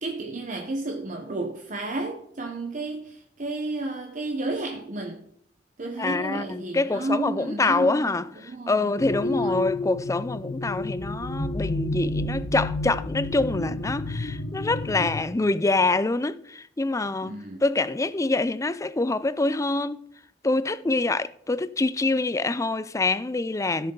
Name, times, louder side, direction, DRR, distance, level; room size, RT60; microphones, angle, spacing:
voice 1, 0.0-5.2 5.8-8.2 8.4-8.9 9.2-9.7 17.2-17.6, right 2 dB, 45° right, 1.0 m, -32 dB
voice 2, 6.0-17.3 17.6-20.0 20.4-23.9, left 2 dB, 15° left, 0.4 m, -25 dB
sound 1, 9.0-15.3, left 2 dB, 90° left, 1.0 m, -30 dB
16.0 x 6.7 x 3.9 m
head